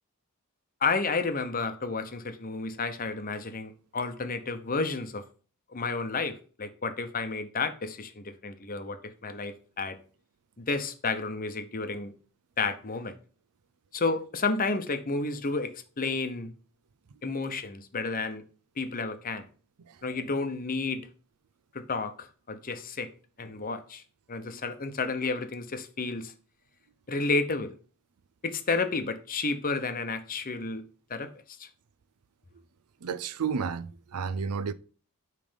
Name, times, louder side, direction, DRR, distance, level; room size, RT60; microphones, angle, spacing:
voice 1, 0.8-5.2 5.7-10.0 10.6-12.1 12.6-13.1 13.9-16.5 17.2-18.4 18.8-19.5 20.0-21.1 21.7-23.1 23.4-24.0 24.3-26.3 27.1-27.7 28.4-30.8 31.1-31.7, left 3 dB, 40° left, 0.8 m, -31 dB
voice 2, 33.0-34.7, right 6 dB, 85° right, 0.5 m, -32 dB
8.9 x 3.4 x 5.1 m
head